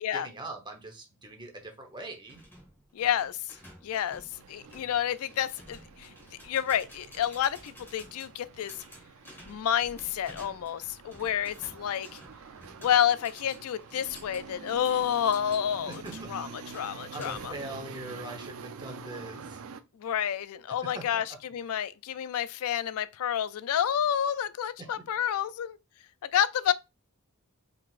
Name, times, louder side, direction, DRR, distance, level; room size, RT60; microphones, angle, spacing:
voice 1, 0.1-2.4 15.9-16.7 17.1-19.6 20.9-21.4 24.8-24.9, right 2 dB, 20° right, 0.9 m, -42 dB
sound 1, 2.3-17.7, equal, 10° left, 1.6 m, -52 dB
voice 2, 2.9-3.4 3.8-4.2 4.5-6.1 6.4-8.7 9.5-12.2 12.8-16.0 16.3-16.5 16.7-17.5 20.0-25.8 26.2-26.7, left 9 dB, 70° left, 0.3 m, -29 dB
sound 2, 4.3-19.8, right 5 dB, 65° right, 0.4 m, -47 dB
4.9 x 3.8 x 2.5 m
head